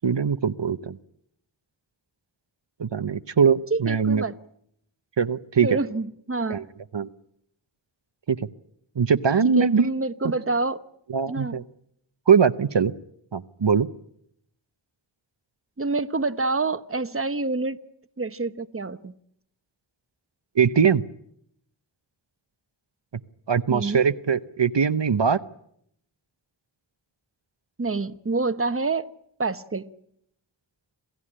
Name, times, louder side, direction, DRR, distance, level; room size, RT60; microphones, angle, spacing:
voice 1, 0.0-1.0 2.8-4.2 5.2-5.7 6.5-6.6 6.9-7.1 8.3-8.5 9.0-9.9 11.1-11.6 12.3-12.9 13.3-13.9 20.6-21.0 23.5-25.4, right 6 dB, 70° right, 0.9 m, -21 dB
voice 2, 3.7-4.3 5.6-6.6 9.6-10.8 11.3-11.6 15.8-17.8 18.2-19.1 23.7-24.0 27.8-29.1 29.4-29.9, right 3 dB, 30° right, 1.0 m, -27 dB
27.5 x 16.5 x 10.0 m
wide cardioid pair, 40°, 45 cm